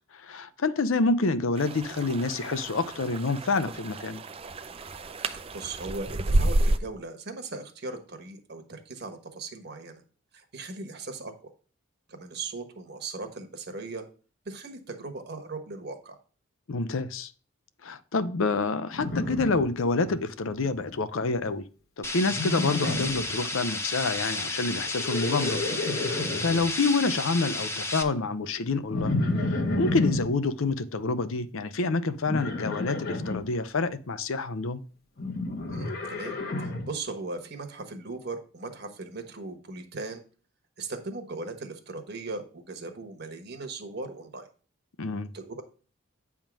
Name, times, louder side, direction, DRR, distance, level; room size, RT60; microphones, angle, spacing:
voice 1, 0.1-4.2 16.7-17.3 17.8-21.6 22.0-25.6 26.0-34.8 45.0-45.3, left 3 dB, 65° left, 0.6 m, -28 dB
Creek Running water, 1.6-6.8, right 1 dB, 25° right, 0.5 m, -30 dB
voice 2, 5.2-10.0 10.3-11.4 12.1-14.0 14.4-16.2 35.7-40.2 40.8-44.5 45.3-45.6, right 3 dB, 50° right, 1.2 m, -38 dB
Livestock farm animals working animals, 18.9-20.2 20.5-21.0 22.3-23.3 24.9-26.6 28.9-30.3 32.3-33.4 35.2-36.9, left 2 dB, 45° left, 1.2 m, -30 dB
sound 1, 22.0-28.0, left 2 dB, 10° left, 0.7 m, -32 dB
8.8 x 3.6 x 6.0 m
head